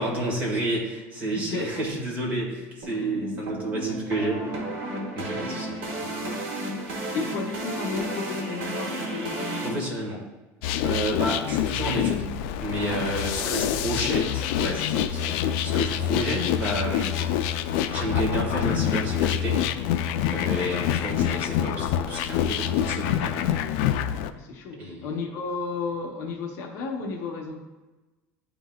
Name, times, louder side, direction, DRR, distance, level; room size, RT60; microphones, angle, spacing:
voice 1, 0.0-4.5 5.1-6.2 9.6-10.2 10.8-17.4 17.9-19.7 20.3-23.4 24.8-25.0, right 1 dB, 25° right, -3 dB, 1.7 m, -30 dB
voice 2, 1.2-2.1 2.3-2.4 2.9-3.2 5.5-5.7 7.1-9.9 12.9-14.0 24.3-27.6, left 4 dB, 50° left, 1 dB, 0.8 m, -34 dB
sound 1, 2.8-9.7, right 1 dB, 70° right, 1.8 m, -33 dB
sound 2, 10.6-24.3, left 10 dB, 70° left, 0.3 m, -26 dB
10.5 x 3.9 x 2.3 m, 1.1 s
cardioid pair, 170°, 6 cm